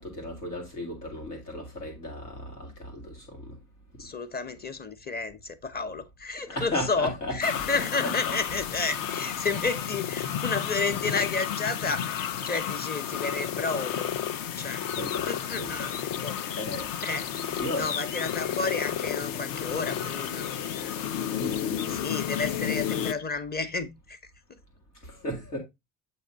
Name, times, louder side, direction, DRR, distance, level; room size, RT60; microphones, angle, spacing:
voice 1, 0.0-3.6 6.5-7.4 7.7-8.3 14.9-16.0 16.6-16.9 17.3-17.9 21.4-22.5 25.0-25.6, left 1 dB, 85° left, 1.7 m, -35 dB
voice 2, 4.0-14.1 14.6-14.9 15.3-16.4 17.0-17.2 17.7-21.0 21.9-24.2, left 4 dB, 20° left, 1.0 m, -31 dB
sound 1, 7.4-23.1, left 9 dB, 45° left, 0.7 m, -32 dB
8.2 x 2.8 x 5.2 m
figure-of-eight pair, 55°, 46 cm